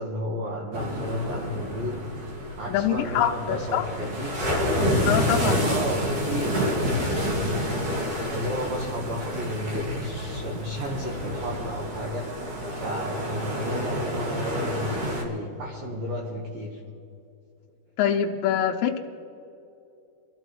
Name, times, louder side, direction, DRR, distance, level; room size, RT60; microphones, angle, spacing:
voice 1, 0.0-2.0 2.6-4.3 5.6-6.6 7.0-7.5 8.3-12.3 12.7-16.8, equal, 70° right, -2 dB, 2.4 m, -33 dB
sound 1, 0.7-15.2, equal, 50° right, 2.7 m, -28 dB
voice 2, 2.7-3.9 5.0-5.7 18.0-19.0, left 9 dB, 90° left, 3 dB, 2.6 m, -24 dB
24.5 x 13.5 x 3.1 m, 2.7 s
omnidirectional pair, 5.9 m